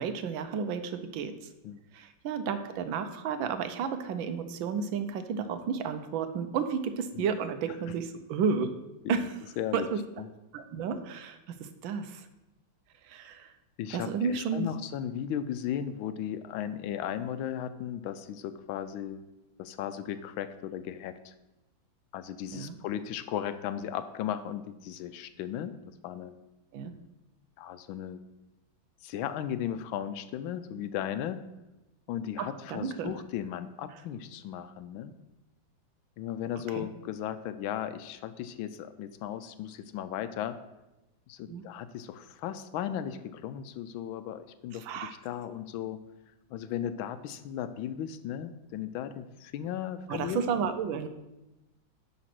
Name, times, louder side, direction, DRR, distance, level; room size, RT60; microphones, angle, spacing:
voice 1, 0.0-1.3 1.9-8.7 9.1-9.2 9.7-10.0 10.5-12.2 13.1-13.5 13.9-14.7 22.5-22.8 26.7-26.9 32.4-33.1 36.7-36.9 41.5-41.6 44.8-45.1 50.1-51.1, right 6 dB, 80° right, 9 dB, 1.5 m, -32 dB
voice 2, 9.6-9.9 10.2-10.3 13.8-19.2 19.6-21.3 22.1-25.7 26.0-26.4 27.6-28.2 29.0-31.4 32.1-35.1 36.2-40.6 41.3-46.0 46.5-50.4, left 10 dB, 90° left, 11 dB, 1.4 m, -36 dB
10.5 x 4.0 x 6.0 m, 0.98 s
omnidirectional pair, 2.1 m